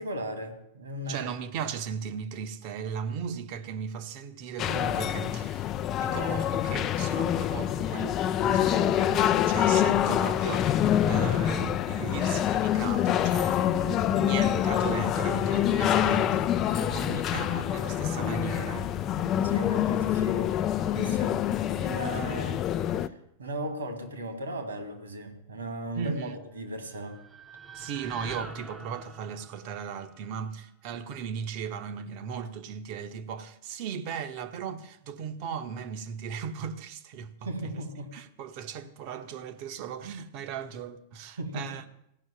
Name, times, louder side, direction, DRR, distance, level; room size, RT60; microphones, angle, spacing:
voice 1, 0.0-1.3 16.0-16.2 19.4-21.5 21.7-23.1 23.4-27.2 37.4-38.1 41.4-41.7, right 1 dB, 70° right, 2.2 m, -37 dB
voice 2, 1.1-16.3 16.7-19.0 25.9-26.4 27.7-37.8 38.1-41.8, right 7 dB, 45° right, 1.1 m, -37 dB
sound 1, 4.6-23.1, left 11 dB, 35° left, 0.6 m, -26 dB
sound 2, 6.1-19.7, equal, 10° left, 1.0 m, -46 dB
sound 3, 26.5-30.8, right 3 dB, 10° right, 0.9 m, -46 dB
16.0 x 6.3 x 9.1 m
figure-of-eight pair, 90°, 0 cm